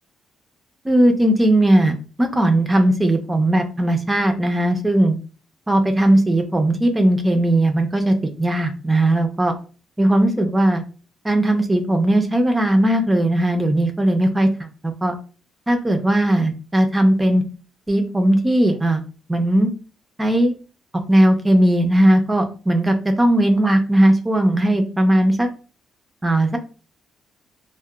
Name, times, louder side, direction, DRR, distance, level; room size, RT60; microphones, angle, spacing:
voice 1, 0.8-5.2 5.7-9.5 10.0-10.8 11.2-15.1 15.7-17.4 17.9-19.0 19.3-19.7 20.2-20.5 21.1-25.5 26.2-26.6, right 1 dB, 15° right, 5 dB, 0.4 m, -18 dB
2.7 x 2.0 x 2.3 m, 0.36 s
cardioid pair, 90°, 0 cm